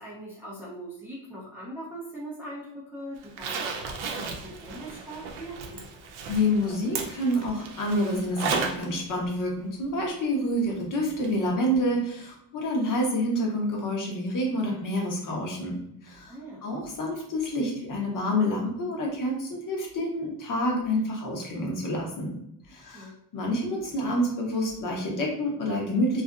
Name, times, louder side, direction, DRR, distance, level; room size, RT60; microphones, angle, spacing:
voice 1, 0.0-5.8 16.3-16.7 22.8-23.2, right 1 dB, 5° right, -5 dB, 0.4 m, -41 dB
Zipper (clothing), 3.2-8.9 9.2-9.3 11.2-11.3 11.7-11.8, right 5 dB, 90° right, 0.6 m, -34 dB
voice 2, 6.3-15.8 16.0-16.3 16.6-22.3 22.7-26.2, left 1 dB, 45° left, -1 dB, 0.8 m, -28 dB
2.7 x 2.5 x 2.3 m, 0.75 s
cardioid pair, 135°, 45 cm